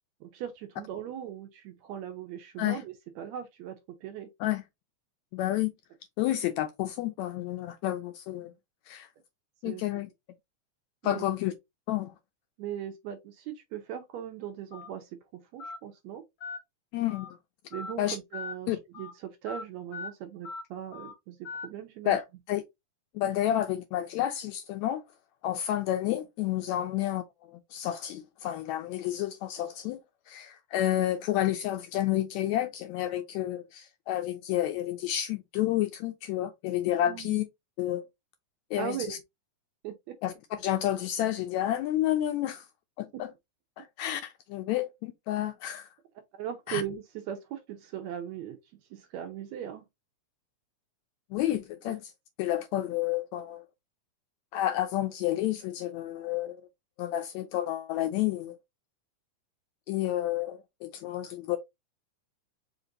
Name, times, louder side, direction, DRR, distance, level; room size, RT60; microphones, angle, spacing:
voice 1, 0.2-4.3 9.6-9.8 11.0-11.3 12.6-16.2 17.7-21.4 21.6-22.2 37.1-37.4 38.8-39.2 39.8-40.1 46.3-48.6 48.9-49.9 51.9-52.0, right 10 dB, 75° right, 1.7 m, -39 dB
voice 2, 5.3-5.7 6.2-8.5 8.9-9.1 9.6-10.1 11.0-11.5 11.9-12.1 16.9-17.4 18.0-18.2 18.7-18.8 22.0-22.6 23.1-25.0 25.4-30.0 30.3-37.4 37.8-38.0 38.7-39.2 40.2-42.7 43.0-43.3 43.8-45.9 46.7-46.8 51.3-52.1 52.4-53.6 54.5-56.6 57.0-58.6 59.9-61.6, left 13 dB, 80° left, 1.7 m, -30 dB
Telephone, 14.7-14.9 15.6-15.8 16.4-16.6 17.1-17.3 17.7-17.9 18.3-18.5 18.9-19.1 19.5-19.6 19.9-20.1 20.4-20.6 20.9-21.1 21.4-21.7, left 4 dB, 65° left, 1.1 m, -39 dB
5.1 x 2.5 x 3.8 m
omnidirectional pair, 3.6 m